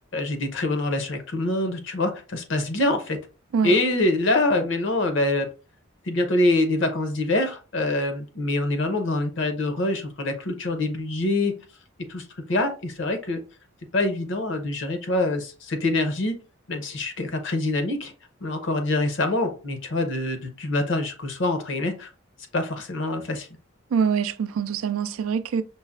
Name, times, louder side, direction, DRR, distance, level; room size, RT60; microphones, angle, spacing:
voice 1, 0.1-3.2 3.6-5.5 6.1-11.5 12.1-13.4 13.9-16.3 16.7-18.1 18.4-22.1 22.5-23.5, left 2 dB, 60° left, 0.7 m, -25 dB
voice 2, 23.9-25.6, right 6 dB, 90° right, 0.4 m, -24 dB
5.4 x 2.1 x 2.4 m
head